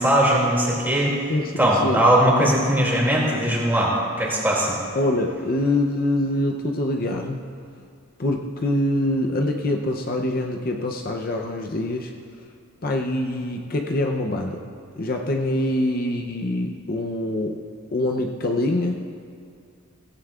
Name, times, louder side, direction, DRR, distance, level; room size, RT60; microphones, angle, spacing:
voice 1, 0.0-1.1 1.6-4.8, right 1 dB, 10° right, -4 dB, 2.4 m, -20 dB
voice 2, 1.1-2.0 4.9-7.4 8.2-12.1 12.8-14.6 15.0-17.6 17.9-19.1, left 1 dB, 45° left, 2 dB, 0.6 m, -24 dB
17.0 x 15.5 x 2.4 m, 2.4 s
head